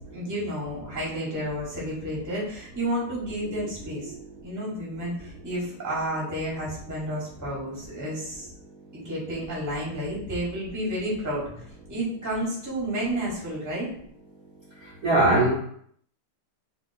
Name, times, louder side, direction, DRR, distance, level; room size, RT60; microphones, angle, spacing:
voice 1, 0.1-4.1 4.4-8.5 8.9-13.9, equal, 10° right, -5 dB, 1.0 m, -31 dB
voice 2, 14.7-15.5, right 2 dB, 55° right, -7 dB, 1.1 m, -23 dB
3.4 x 3.0 x 4.1 m, 0.64 s
omnidirectional pair, 2.4 m